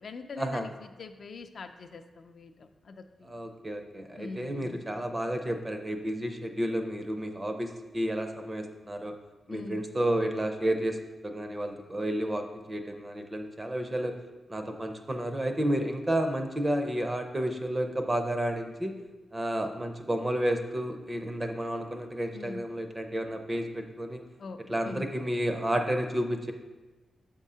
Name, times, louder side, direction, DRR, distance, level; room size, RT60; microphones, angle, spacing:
voice 1, 0.0-3.4 4.1-4.8 9.5-9.8 22.3-22.6 24.4-24.6 24.8-25.1, left 4 dB, 50° left, 6 dB, 0.4 m, -43 dB
voice 2, 3.3-9.1 9.5-11.0 11.2-14.1 14.5-18.9 19.3-24.2 24.7-26.5, right 1 dB, 15° right, 5 dB, 0.5 m, -31 dB
7.3 x 3.7 x 5.5 m, 1.2 s
wide cardioid pair, 170°, 0 cm